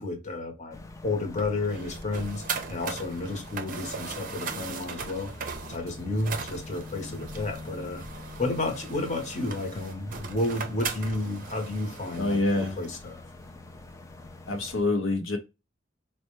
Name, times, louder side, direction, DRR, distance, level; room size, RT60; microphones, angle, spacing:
voice 1, 0.0-8.0 8.4-13.2, left 2 dB, 35° left, 0.9 m, -32 dB
sound 1, 0.7-14.8, left 2 dB, 15° left, 0.4 m, -44 dB
sound 2, 1.4-12.9, right 6 dB, 45° right, 0.5 m, -39 dB
voice 2, 12.2-12.8 14.5-15.4, left 2 dB, 85° left, 0.7 m, -26 dB
4.3 x 2.2 x 3.0 m
head